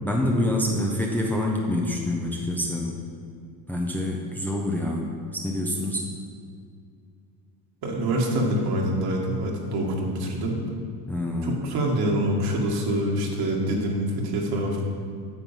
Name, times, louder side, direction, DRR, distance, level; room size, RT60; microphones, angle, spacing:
voice 1, 0.0-2.9 3.7-6.1 11.1-11.6, left 1 dB, 5° left, -1 dB, 0.9 m, -26 dB
voice 2, 7.8-10.6 11.4-14.8, right 1 dB, 55° right, -1 dB, 2.1 m, -25 dB
9.2 x 4.5 x 7.4 m, 2.3 s
supercardioid pair, 105°, 46 cm